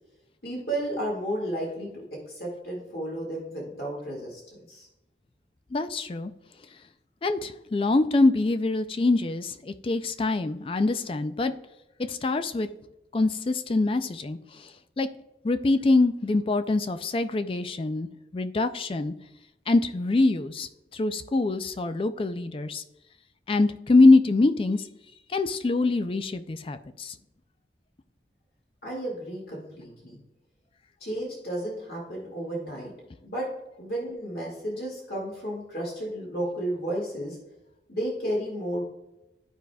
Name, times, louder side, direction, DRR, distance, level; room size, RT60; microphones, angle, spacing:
voice 1, 0.4-4.9 28.8-30.2 31.0-32.9 33.2-33.5 33.8-37.4 37.9-38.8, right 1 dB, 55° left, -4 dB, 2.0 m, -33 dB
voice 2, 5.7-6.3 7.2-11.5 12.1-12.7 13.1-15.1 15.4-19.1 19.7-22.8 23.5-24.9 25.3-27.2, left 2 dB, 30° left, 10 dB, 0.3 m, -24 dB
12.5 x 4.8 x 2.3 m, 0.94 s
head